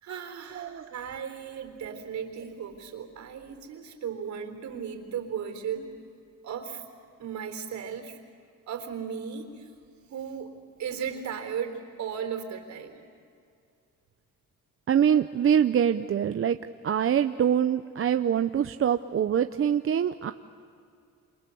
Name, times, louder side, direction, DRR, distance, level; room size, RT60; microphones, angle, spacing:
voice 1, 0.0-6.0 6.4-6.8 7.2-8.2 8.7-9.7 10.1-13.0, right 7 dB, 70° right, 6 dB, 3.8 m, -36 dB
voice 2, 0.6-0.9 14.9-16.6 16.8-20.3, right 9 dB, 45° right, 9 dB, 0.7 m, -24 dB
28.0 x 28.0 x 7.0 m, 2.4 s
cardioid pair, 90°, 30 cm